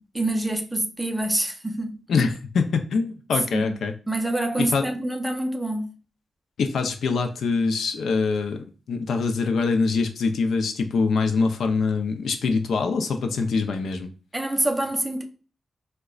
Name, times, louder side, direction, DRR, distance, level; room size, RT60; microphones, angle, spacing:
voice 1, 0.0-2.0 3.5-3.8 4.1-5.9 14.3-15.2, right 1 dB, 10° right, 0.5 m, -26 dB
voice 2, 2.1-3.9 4.6-4.9 6.6-14.1, left 4 dB, 80° left, 0.5 m, -24 dB
4.8 x 2.2 x 2.3 m
wide cardioid pair, 125°, 0 cm